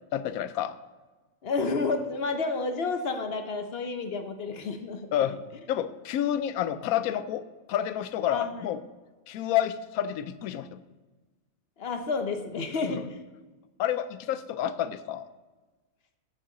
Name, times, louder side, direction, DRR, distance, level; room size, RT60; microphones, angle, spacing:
voice 1, 0.1-0.8 5.1-5.4 5.7-8.8 9.3-10.8 13.8-15.3, left 11 dB, 90° left, 13 dB, 1.0 m, -29 dB
voice 2, 1.4-5.1 8.3-8.6 11.8-13.2, left 4 dB, 50° left, 6 dB, 0.9 m, -30 dB
13.5 x 6.1 x 3.8 m, 1.3 s
omnidirectional pair, 1.5 m